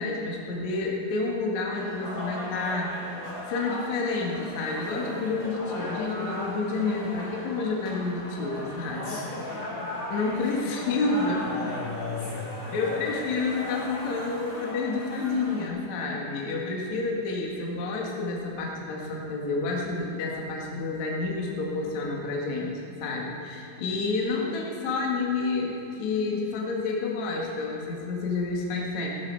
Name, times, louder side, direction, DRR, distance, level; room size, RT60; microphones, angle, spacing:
voice 1, 0.0-2.9 3.5-9.2 10.1-11.4 12.7-22.7 23.0-29.1, left 3 dB, 55° left, -2 dB, 2.6 m, -29 dB
sound 1, 1.7-15.7, left 1 dB, 25° left, 3.2 m, -38 dB
voice 2, 9.0-9.9 10.6-10.7 11.4-13.2 14.5-14.8, left 3 dB, 85° left, -7 dB, 5.5 m, -37 dB
16.5 x 13.0 x 4.6 m, 2.8 s
omnidirectional pair, 4.4 m